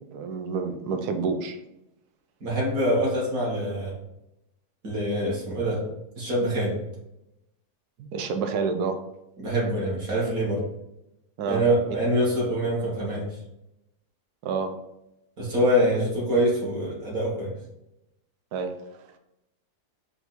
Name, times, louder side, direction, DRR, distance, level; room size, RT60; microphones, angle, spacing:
voice 1, 0.1-1.6 8.0-9.0 11.4-11.6 14.4-14.7 18.5-19.0, right 5 dB, 70° right, 6 dB, 1.1 m, -29 dB
voice 2, 2.4-3.9 4.8-5.8 6.2-6.8 9.4-10.6 11.4-13.3 15.4-17.5, equal, 55° right, -5 dB, 1.9 m, -25 dB
4.4 x 2.7 x 4.2 m, 0.87 s
omnidirectional pair, 1.8 m